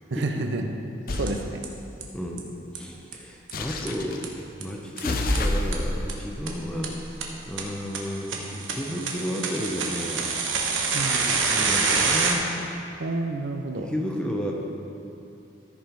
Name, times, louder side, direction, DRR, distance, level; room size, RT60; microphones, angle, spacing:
voice 1, 0.1-0.8 1.1-1.6 10.9-11.3 13.0-13.9, right 2 dB, 65° right, 5 dB, 0.6 m, -29 dB
sound 1, 1.1-1.4 3.5-4.2 5.0-7.6, left 1 dB, 50° left, 0.6 m, -29 dB
sound 2, 1.3-1.4 1.6-1.7 2.0-2.1 2.4-2.5 2.7-2.8 3.1-3.2 3.5-3.6 3.9-4.0 4.2-4.3 4.6-4.7 5.0-5.1 5.3-5.4 5.7-5.8 6.1-6.2 6.5-6.6 6.8-6.9 7.2-7.3 7.6-7.7 7.9-12.3, right 4 dB, 90° right, 1.1 m, -26 dB
voice 2, 2.1-10.3 11.1-12.5 13.9-14.5, equal, 5° left, 0 dB, 0.8 m, -32 dB
14.0 x 5.3 x 4.5 m, 2.7 s
head